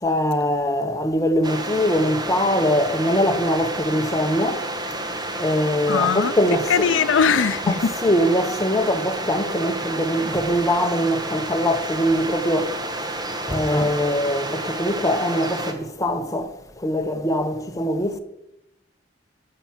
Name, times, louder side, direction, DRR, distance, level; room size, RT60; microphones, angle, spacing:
voice 1, 0.0-4.7 5.4-6.9 7.7-13.1 13.4-18.2, equal, 20° left, 0.9 m, -22 dB
sound 1, 1.4-15.7, right 1 dB, 20° right, 1.1 m, -30 dB
voice 2, 5.9-6.3 6.7-7.9, left 6 dB, 90° left, 0.5 m, -20 dB
13.5 x 5.9 x 7.3 m
head